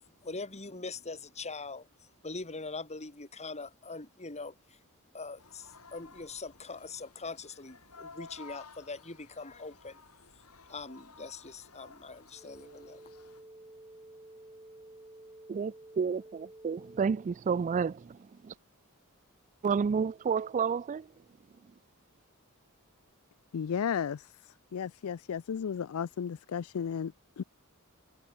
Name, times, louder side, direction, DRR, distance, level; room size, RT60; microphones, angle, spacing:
voice 1, 0.2-4.8 5.1-10.0 10.7-13.0, left 3 dB, 30° left, 3.2 m, -42 dB
sound 1, 5.4-13.4, left 4 dB, 85° left, 5.6 m, -54 dB
sound 2, 12.3-17.3, right 1 dB, 20° right, 2.6 m, -52 dB
voice 2, 15.5-18.2 18.4-18.5 19.6-21.0, right 6 dB, 35° right, 0.3 m, -30 dB
voice 3, 23.5-24.3 24.7-27.4, left 7 dB, 70° left, 0.4 m, -34 dB
head